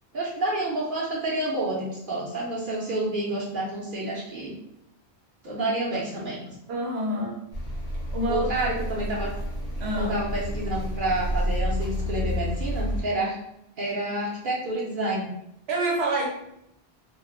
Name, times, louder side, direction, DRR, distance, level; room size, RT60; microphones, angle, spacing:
voice 1, 0.1-4.5 5.4-6.4 8.3-9.3 10.0-13.4 13.8-15.3, right 1 dB, 60° right, -5 dB, 0.7 m, -29 dB
voice 2, 6.7-7.4 8.1-8.7 9.8-10.2 15.7-16.3, right 1 dB, 85° right, -1 dB, 0.9 m, -27 dB
sound 1, 7.5-13.0, equal, 55° left, 0.7 m, -30 dB
2.3 x 2.1 x 3.0 m, 0.79 s
omnidirectional pair, 1.0 m